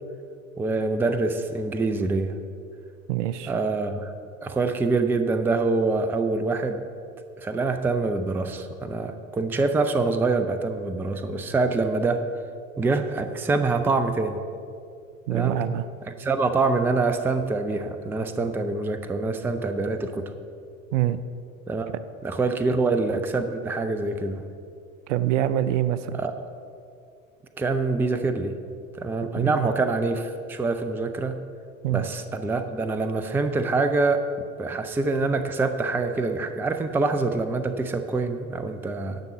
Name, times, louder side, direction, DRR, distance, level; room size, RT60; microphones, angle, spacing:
voice 1, 0.6-2.3 3.5-4.1 4.4-6.8 7.4-12.2 12.8-14.4 15.3-15.6 16.1-20.2 21.7-21.9 22.2-24.4 26.1-26.4 27.6-28.5 28.9-31.4 31.9-34.2 34.6-39.2, right 3 dB, 5° right, 8 dB, 0.4 m, -25 dB
voice 2, 3.1-3.5 15.3-15.8 20.9-21.2 25.1-26.2 29.4-29.7 31.8-32.1, right 12 dB, 60° right, 14 dB, 0.6 m, -25 dB
10.5 x 6.0 x 6.7 m, 2.3 s
figure-of-eight pair, 80°, 41 cm